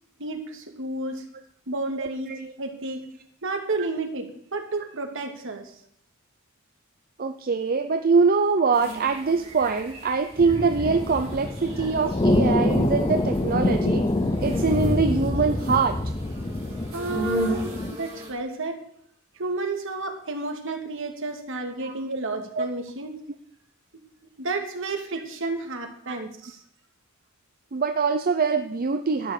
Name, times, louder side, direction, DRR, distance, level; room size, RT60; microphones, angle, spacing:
voice 1, 0.2-1.2 1.7-2.3 2.6-3.0 3.4-5.7 16.9-18.8 19.4-23.1 24.4-26.6, right 2 dB, 65° right, 4 dB, 2.2 m, -31 dB
voice 2, 7.2-14.1 14.4-16.0 21.8-21.9 22.6-22.7 26.1-26.2 27.7-29.3, right 4 dB, 45° right, 8 dB, 0.6 m, -23 dB
sound 1, 8.7-18.3, right 1 dB, 25° right, 5.9 m, -36 dB
sound 2, 10.4-17.9, left 1 dB, 25° left, 0.7 m, -25 dB
12.5 x 9.5 x 6.7 m, 0.67 s
head